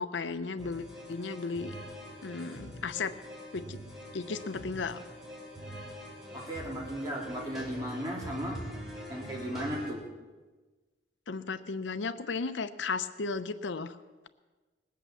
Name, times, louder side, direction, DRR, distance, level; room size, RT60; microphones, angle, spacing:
voice 1, 0.0-1.7 2.2-3.1 3.5-3.8 4.1-5.0 11.3-14.0, left 4 dB, 85° left, 12 dB, 0.7 m, -35 dB
sound 1, 0.6-9.9, equal, ahead, 3.2 m, -44 dB
voice 2, 6.3-8.6 9.1-10.0, equal, 20° right, -2 dB, 3.1 m, -36 dB
19.5 x 8.5 x 7.2 m, 1.2 s
head